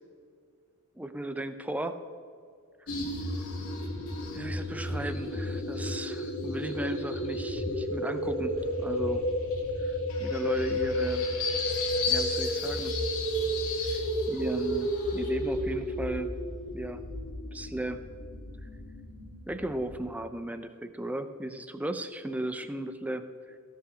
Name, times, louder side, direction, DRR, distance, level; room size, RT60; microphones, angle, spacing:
voice 1, 1.0-2.0 2.8-2.9 4.3-8.5 8.8-9.2 9.8-11.3 12.1-12.9 14.3-16.3 16.7-17.0 17.5-18.0 19.5-23.6, right 1 dB, 5° right, 10 dB, 0.4 m, -35 dB
sound 1, 2.9-20.0, left 1 dB, 85° left, 1.8 m, -32 dB
15.0 x 5.5 x 5.0 m, 2.2 s
head